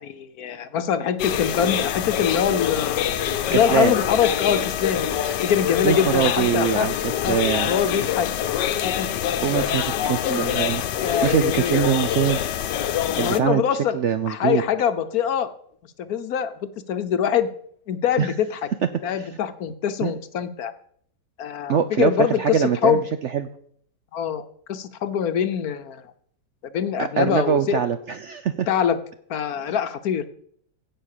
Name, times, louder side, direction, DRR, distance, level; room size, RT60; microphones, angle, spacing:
voice 1, 0.0-3.1 3.5-5.1 5.4-6.9 7.2-7.4 7.7-8.3 8.8-9.1 9.5-10.6 11.0-11.8 13.2-14.0 14.3-15.5 16.0-17.5 17.9-18.6 19.0-20.7 21.4-23.0 24.1-26.0 26.7-27.8 28.7-29.0 29.3-30.2, left 8 dB, 65° left, 11 dB, 1.2 m, -24 dB
sound 1, 1.2-13.4, left 10 dB, 90° left, 1.4 m, -25 dB
voice 2, 3.5-4.0 5.8-7.7 9.4-10.8 11.2-12.4 13.2-13.6 13.9-14.6 18.2-18.3 19.2-19.4 20.0-20.1 21.7-23.5 27.0-28.7, right 8 dB, 65° right, 10 dB, 0.7 m, -23 dB
16.0 x 5.4 x 6.6 m, 0.64 s
omnidirectional pair, 1.8 m